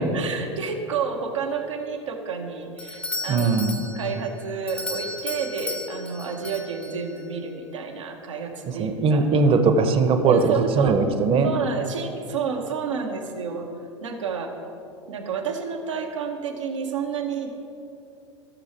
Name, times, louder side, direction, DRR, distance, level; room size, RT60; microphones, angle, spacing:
voice 1, 0.0-3.5 3.8-9.2 10.3-11.0 11.4-13.7 14.0-14.5 15.1-17.5, right 6 dB, 80° right, 1 dB, 1.2 m, -30 dB
Doorbell, 2.8-7.3, left 2 dB, 5° left, 0.8 m, -35 dB
voice 2, 3.3-3.9 8.7-11.5, right 4 dB, 35° right, 7 dB, 1.0 m, -20 dB
15.0 x 6.4 x 4.4 m, 2.7 s
hypercardioid pair, 80°, 16 cm